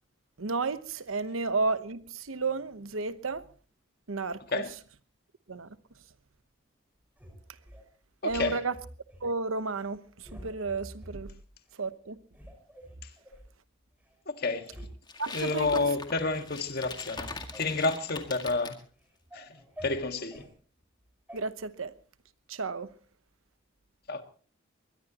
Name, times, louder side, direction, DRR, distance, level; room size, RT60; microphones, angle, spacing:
voice 1, 0.4-3.5 4.1-4.6 5.5-5.8 8.2-8.8 9.2-11.3 11.7-12.2 15.2-15.9 21.3-22.0 22.5-22.9, right 3 dB, 85° right, 1.0 m, -32 dB
sound 1, 7.2-7.8 8.3-9.3 9.7-9.9 10.2-11.2 11.7-11.8 12.3-13.5 14.1-14.2 14.4-14.9 15.2-15.8 16.3-16.5 16.8-18.6 19.0-20.5 21.3-21.4, equal, 10° right, 5.5 m, -48 dB
voice 2, 14.3-14.7 15.3-18.8 19.3-20.4 24.1-24.2, left 3 dB, 50° left, 1.7 m, -30 dB
sound 2, 15.1-18.8, left 4 dB, 20° left, 1.9 m, -42 dB
21.5 x 21.0 x 3.0 m
head